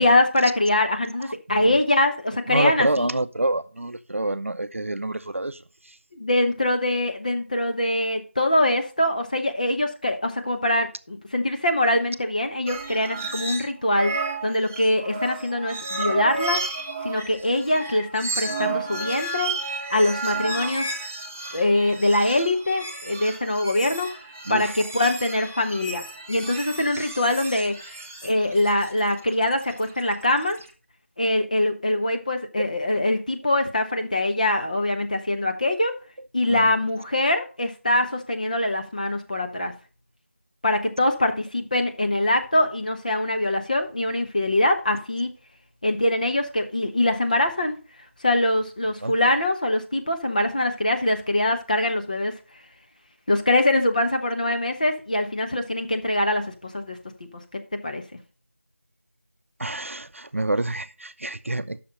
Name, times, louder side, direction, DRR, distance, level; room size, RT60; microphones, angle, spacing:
voice 1, 0.0-3.1 6.1-14.1 14.4-16.6 17.0-19.5 19.9-20.9 21.5-24.1 24.5-27.7 28.2-30.6 31.2-35.9 36.3-39.7 40.6-45.3 45.8-47.8 48.2-52.3 53.3-57.0 57.8-58.0, left 1 dB, 35° left, 1.0 m, -23 dB
voice 2, 2.5-6.0 24.5-24.7 36.5-36.7 49.0-49.1 59.6-61.8, right 2 dB, 75° right, 0.6 m, -27 dB
sound 1, 12.7-13.7 13.9-30.6, right 3 dB, 10° right, 0.5 m, -32 dB
8.2 x 6.1 x 5.0 m
figure-of-eight pair, 170°, 7 cm